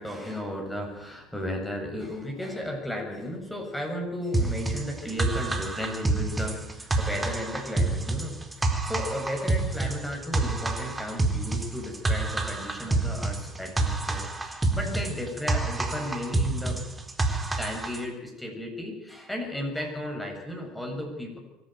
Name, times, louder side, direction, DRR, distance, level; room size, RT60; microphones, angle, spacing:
voice 1, 0.0-16.8 17.6-21.4, left 1 dB, 5° left, 1 dB, 7.5 m, -34 dB
sound 1, 4.3-18.0, right 2 dB, 15° right, 3.9 m, -28 dB
24.0 x 13.5 x 9.3 m, 0.96 s
hypercardioid pair, 80°, 0 cm